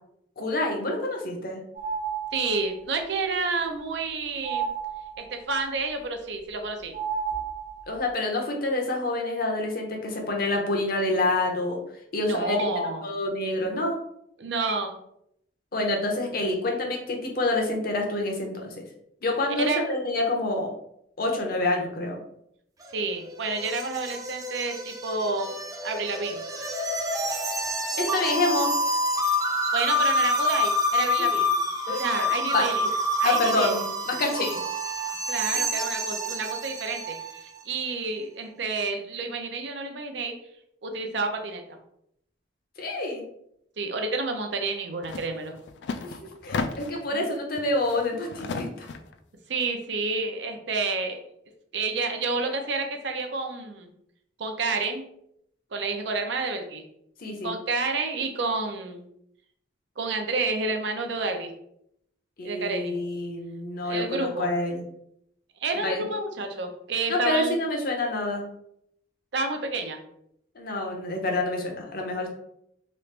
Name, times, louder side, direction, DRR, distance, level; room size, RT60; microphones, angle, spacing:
voice 1, 0.4-1.6 7.9-11.8 12.1-12.6 13.0-14.0 15.7-18.7 19.2-20.7 21.2-22.2 28.0-28.7 31.9-32.3 32.5-32.6 33.2-34.6 42.8-43.2 46.0-46.1 46.4-48.9 57.2-57.5 62.4-64.8 65.8-66.1 67.1-68.4 70.6-72.3, left 2 dB, 55° left, 1 dB, 0.7 m, -27 dB
sound 1, 1.7-2.7 4.4-5.4 6.9-8.0, right 7 dB, 45° right, 0.8 m, -32 dB
voice 2, 2.3-4.7 5.2-6.9 12.2-13.0 14.4-14.9 19.6-19.8 22.9-26.4 29.7-31.5 32.0-32.9 33.2-33.8 35.0-37.2 37.7-40.4 40.8-41.6 43.8-45.5 47.1-47.2 49.5-51.2 51.7-53.9 54.4-55.0 55.7-56.8 57.4-59.0 60.0-61.5 62.4-63.0 63.8-64.5 65.6-67.6 69.3-70.0, right 3 dB, 80° right, 5 dB, 0.5 m, -29 dB
sound 2, 22.8-37.4, left 1 dB, 20° right, 0.4 m, -27 dB
sound 3, 45.0-45.3 45.6-47.1 47.6-49.1, left 4 dB, 70° left, 0.3 m, -34 dB
3.1 x 2.4 x 3.2 m, 0.75 s
head